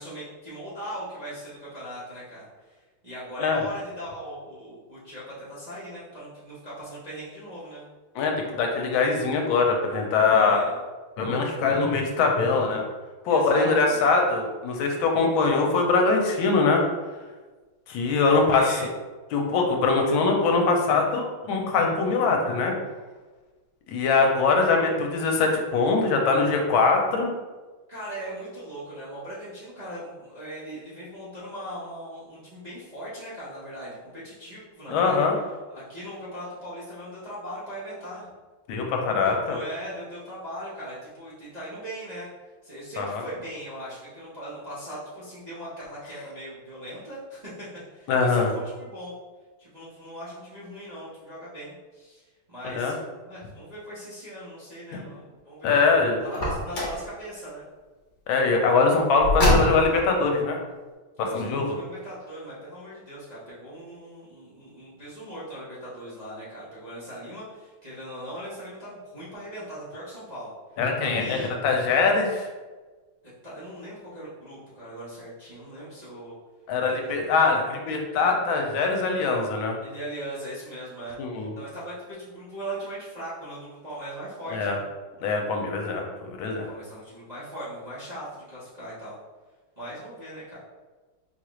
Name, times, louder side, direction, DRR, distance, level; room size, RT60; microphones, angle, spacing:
voice 1, 0.0-7.9 10.3-10.8 13.3-14.1 18.2-18.9 27.9-35.2 35.7-38.3 39.2-42.3 42.6-47.5 47.9-49.1 49.6-53.0 53.2-55.8 56.2-57.6 61.2-70.5 71.0-71.5 73.4-76.3 76.8-77.1 79.8-84.8 86.6-89.2 89.8-90.6, right 1 dB, 45° right, -11 dB, 0.5 m, -39 dB
voice 2, 8.1-10.6 11.2-12.8 13.2-16.8 17.9-18.8 19.3-22.7 23.9-27.3 34.9-35.4 38.7-39.6 43.0-43.2 48.1-48.5 52.6-52.9 54.9-55.1 55.6-56.2 58.3-60.6 61.3-61.8 70.8-72.5 76.7-79.7 81.2-81.5 84.5-84.8 85.2-86.7, left 4 dB, 80° left, 2 dB, 1.3 m, -22 dB
Car, 56.3-57.1 59.2-60.1, left 1 dB, 50° left, 0.9 m, -23 dB
4.5 x 2.4 x 3.0 m, 1.3 s
omnidirectional pair, 2.3 m